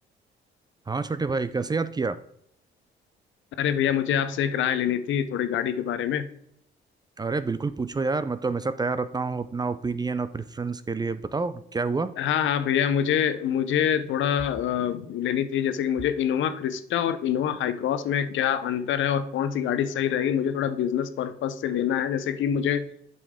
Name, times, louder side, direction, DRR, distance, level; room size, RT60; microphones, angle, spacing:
voice 1, 0.9-2.2 7.2-12.1, right 4 dB, 20° right, 13 dB, 0.4 m, -28 dB
voice 2, 3.6-6.3 12.2-22.8, left 9 dB, 75° left, 11 dB, 0.7 m, -25 dB
8.3 x 5.4 x 3.6 m, 0.71 s
cardioid pair, 90°, 20 cm